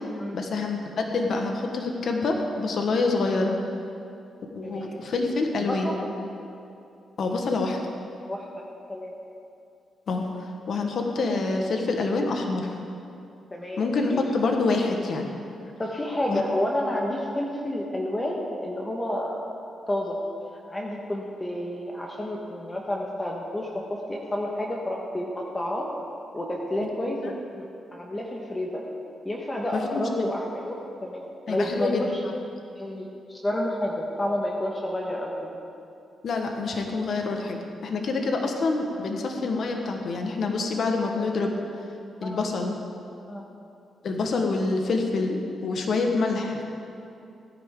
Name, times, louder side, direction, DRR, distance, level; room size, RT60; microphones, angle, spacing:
voice 1, 0.3-3.6 4.5-6.0 7.2-7.8 10.1-10.2 10.7-12.7 13.8-15.3 16.3-16.4 27.1-27.3 29.7-30.3 31.5-32.1 36.2-41.5 42.2-42.8 44.0-45.4 45.6-46.6, left 3 dB, 65° left, 3 dB, 1.3 m, -26 dB
voice 2, 4.6-5.0 5.6-6.1 8.3-8.5 8.9-9.1 13.5-14.2 15.8-19.4 19.9-20.2 20.7-25.9 26.3-28.8 29.2-32.2 32.8-35.5 38.9-39.1 42.2-42.5 43.3-43.5, left 1 dB, 20° left, -2 dB, 1.5 m, -30 dB
17.5 x 10.0 x 3.8 m, 2.6 s
cardioid pair, 80°, 0 cm